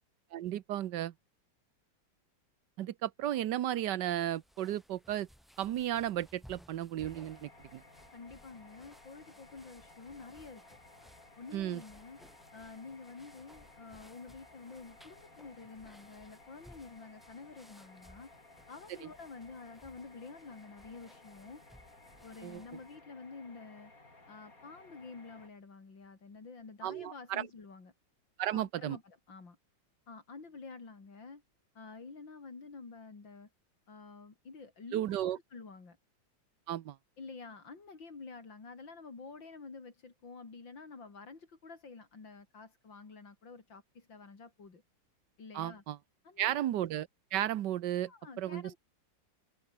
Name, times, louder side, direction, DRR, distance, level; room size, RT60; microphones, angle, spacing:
voice 1, 0.3-1.1 2.8-5.3 5.6-7.8 11.5-11.8 22.4-22.6 26.8-27.5 28.4-29.0 34.9-35.4 36.7-37.0 45.5-46.0 46.4-48.1 48.4-48.7, right 12 dB, 70° right, 1.4 m, -34 dB
sound 1, 4.0-23.0, equal, ahead, 7.3 m, -61 dB
sound 2, 7.0-25.5, left 2 dB, 45° left, 5.7 m, -58 dB
voice 2, 8.1-10.6 11.4-12.2 12.5-18.3 18.7-21.6 22.2-23.9 24.3-27.9 28.5-29.6 30.1-31.4 31.7-33.5 33.9-36.0 37.2-44.8 45.4-45.8 46.2-46.6 48.1-48.8, left 4 dB, 85° left, 4.5 m, -49 dB
omnidirectional pair, 2.0 m